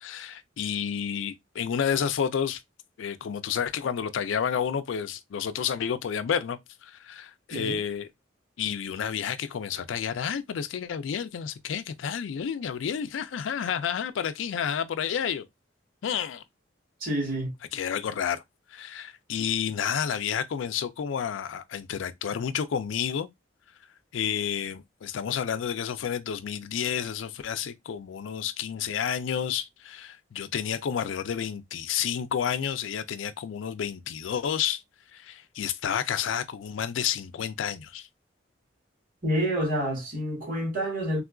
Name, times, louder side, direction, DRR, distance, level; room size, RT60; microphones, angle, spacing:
voice 1, 0.0-2.6 3.0-8.1 8.6-15.4 16.0-16.4 17.7-18.4 18.7-23.3 24.1-34.8 35.1-38.1, left 8 dB, 80° left, 0.4 m, -30 dB
voice 2, 17.0-17.5 39.2-41.2, equal, 50° right, 1.6 m, -28 dB
3.6 x 2.4 x 2.3 m
head